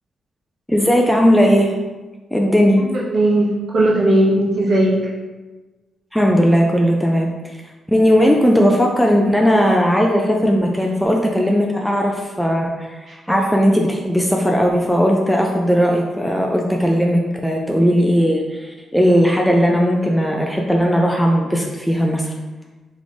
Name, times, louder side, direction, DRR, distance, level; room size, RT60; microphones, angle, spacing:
voice 1, 0.7-1.7 2.3-2.8 6.1-7.6 7.9-22.3, equal, 5° left, 0 dB, 0.3 m, -17 dB
voice 2, 2.8-5.0, right 1 dB, 60° right, -4 dB, 1.0 m, -17 dB
3.4 x 3.1 x 2.6 m, 1.2 s
cardioid pair, 80°, 0 cm